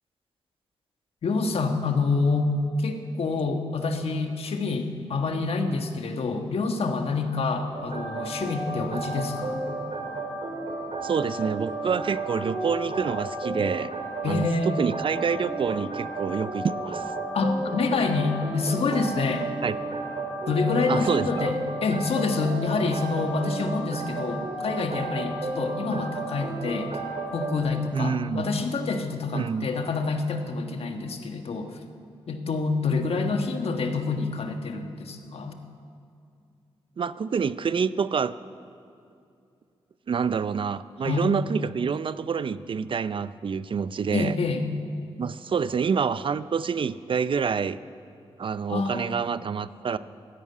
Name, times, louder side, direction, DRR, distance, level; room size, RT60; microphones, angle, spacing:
voice 1, 1.2-2.5 2.8-9.6 14.2-14.9 17.3-19.5 20.5-27.0 27.3-31.8 32.3-35.6 41.0-41.3 44.1-44.6 48.7-49.3, left 4 dB, 70° left, 5 dB, 1.4 m, -27 dB
sound 1, 7.7-27.6, right 2 dB, 70° right, 2.2 m, -33 dB
voice 2, 11.0-13.9 14.2-17.1 19.6-19.8 20.9-21.5 27.9-28.5 29.3-29.7 37.0-38.3 40.1-44.4 45.2-47.8 48.4-50.0, right 6 dB, 55° right, 15 dB, 0.5 m, -27 dB
13.0 x 11.0 x 9.6 m, 2.5 s
cardioid pair, 60°, 11 cm